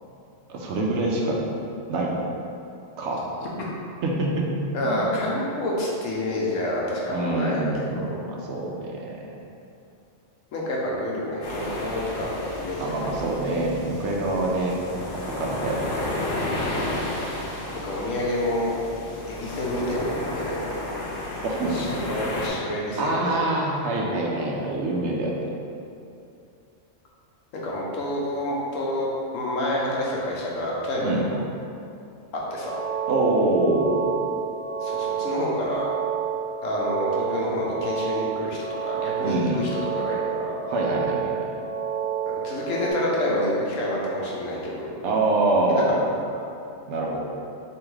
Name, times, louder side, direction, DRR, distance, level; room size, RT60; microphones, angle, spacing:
voice 1, 0.5-1.4 1.9-2.1 3.0-3.2 4.0-4.5 4.8-5.1 7.1-9.2 12.8-16.1 21.4-21.8 23.0-25.4 31.0-31.3 33.1-34.0 39.2-39.7 40.7-41.5 45.0-46.0 46.9-47.2, right 2 dB, 70° right, -2 dB, 0.8 m, -25 dB
voice 2, 4.7-8.2 10.5-13.2 17.7-18.7 19.3-20.7 21.7-23.4 27.5-31.4 32.5-32.8 34.8-35.9 36.6-40.5 42.3-44.9 45.7-45.8, left 1 dB, 85° left, -4 dB, 1.1 m, -28 dB
sound 1, 11.4-22.5, left 1 dB, 55° left, 0.7 m, -32 dB
sound 2, 32.4-42.9, right 7 dB, 90° right, 1.2 m, -29 dB
3.4 x 2.9 x 3.1 m, 2.6 s
omnidirectional pair, 1.3 m